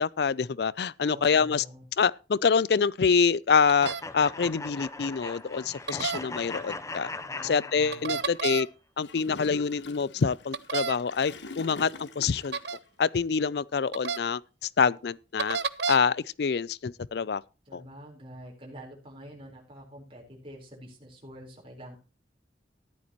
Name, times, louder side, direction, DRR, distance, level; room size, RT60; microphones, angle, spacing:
voice 1, 0.0-1.6 2.0-7.1 7.4-8.7 9.0-12.6 13.0-15.6 15.9-17.4 17.7-17.8, left 5 dB, 65° left, 0.4 m, -26 dB
voice 2, 1.0-1.8 7.2-8.2 17.7-22.0, equal, 30° right, 4.2 m, -46 dB
sound 1, 3.7-4.0 5.9-6.2 7.9-8.7 10.5-11.0 12.5-12.8 13.9-14.2 15.4-16.0, right 5 dB, 70° right, 0.7 m, -30 dB
sound 2, 3.8-8.4, left 3 dB, 15° left, 0.7 m, -39 dB
Gurgling / Toilet flush, 9.0-12.8, left 3 dB, 85° left, 1.2 m, -44 dB
14.0 x 11.5 x 3.0 m
head